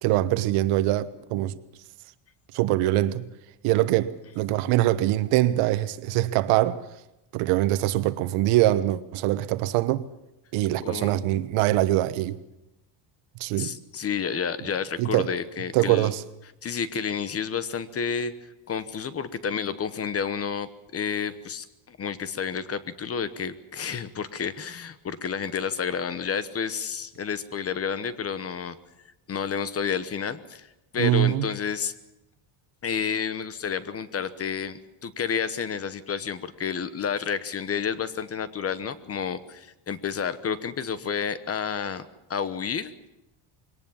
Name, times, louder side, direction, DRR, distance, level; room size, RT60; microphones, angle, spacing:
voice 1, 0.0-1.6 2.5-3.2 3.6-6.8 7.3-10.0 10.5-12.4 13.4-13.7 15.0-15.3 15.7-16.2 31.0-31.5, right 15 dB, 80° right, 1.3 m, -23 dB
voice 2, 10.8-11.4 13.6-16.1 16.6-18.3 18.7-28.8 29.3-30.7 30.9-31.9 32.8-43.1, left 7 dB, 30° left, 1.1 m, -30 dB
22.0 x 18.5 x 7.2 m
cardioid pair, 150°, 50 cm